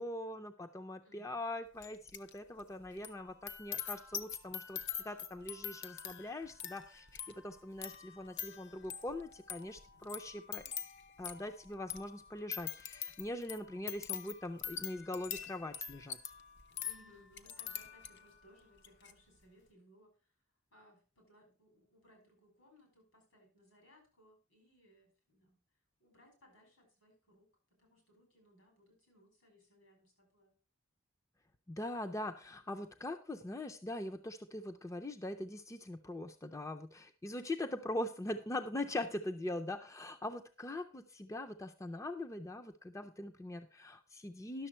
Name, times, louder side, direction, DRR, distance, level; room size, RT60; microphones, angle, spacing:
voice 1, 0.0-10.7 11.2-16.2 31.7-44.7, left 1 dB, 15° left, 6 dB, 0.5 m, -42 dB
voice 2, 1.0-1.4 16.8-20.3 20.7-25.6 26.0-27.5 27.8-30.5 38.9-39.2, equal, 80° left, 2 dB, 5.4 m, -65 dB
sound 1, 1.8-2.3 2.6-18.4 18.8-19.1, left 8 dB, 55° left, 0.7 m, -45 dB
11.0 x 6.8 x 4.4 m, 0.34 s
head